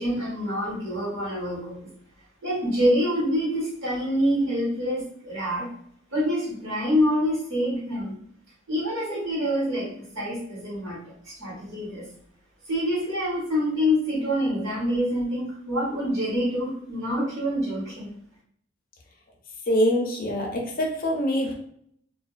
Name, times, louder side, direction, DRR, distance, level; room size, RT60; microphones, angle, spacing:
voice 1, 0.0-1.9 2.4-5.7 6.1-8.1 8.7-11.0 11.2-12.1 12.7-18.1, equal, 80° right, -8 dB, 1.3 m, -26 dB
voice 2, 19.7-21.5, equal, 45° left, 0 dB, 0.5 m, -24 dB
2.4 x 2.2 x 2.3 m, 0.67 s
head